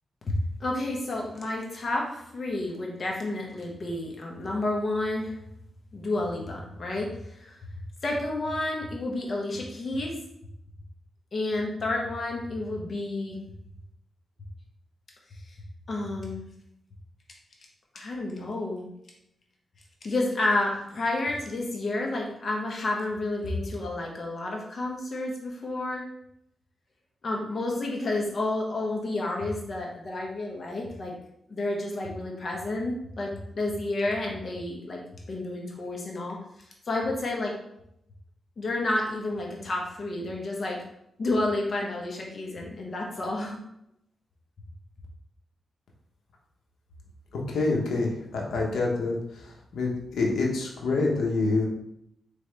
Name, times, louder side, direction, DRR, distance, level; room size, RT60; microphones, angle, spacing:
voice 1, 0.6-5.3 5.9-7.1 7.4-7.6 8.0-10.1 11.3-13.4 15.9-16.5 17.9-18.9 20.0-26.0 27.2-31.1 31.5-35.0 35.3-36.4 36.9-37.5 38.6-40.8 41.2-43.6, left 2 dB, 50° left, -1 dB, 1.2 m, -30 dB
voice 2, 47.5-49.1 49.7-49.9 50.2-51.7, left 3 dB, 85° left, -1 dB, 1.0 m, -26 dB
4.3 x 3.4 x 3.4 m, 0.79 s
cardioid pair, 80°, 0 cm